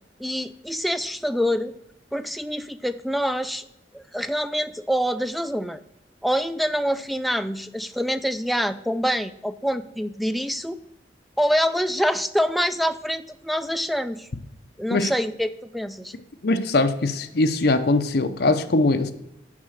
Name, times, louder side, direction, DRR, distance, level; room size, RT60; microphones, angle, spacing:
voice 1, 0.2-1.7 2.1-3.6 3.9-5.8 6.2-10.8 11.4-14.3 14.8-16.1, equal, ahead, 11 dB, 0.3 m, -26 dB
voice 2, 16.4-19.1, left 2 dB, 60° left, 8 dB, 0.7 m, -21 dB
7.4 x 4.8 x 6.6 m, 0.84 s
head